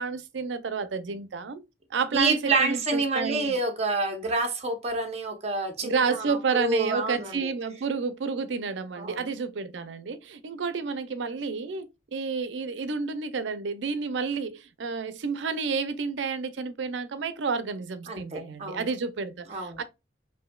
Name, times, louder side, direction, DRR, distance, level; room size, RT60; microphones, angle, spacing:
voice 1, 0.0-1.6 1.9-3.6 5.8-19.8, right 5 dB, 85° right, 0.5 m, -30 dB
voice 2, 2.1-7.5 9.0-9.3 18.1-18.9 19.5-19.8, right 3 dB, 35° right, 0.8 m, -28 dB
4.9 x 2.6 x 2.3 m
head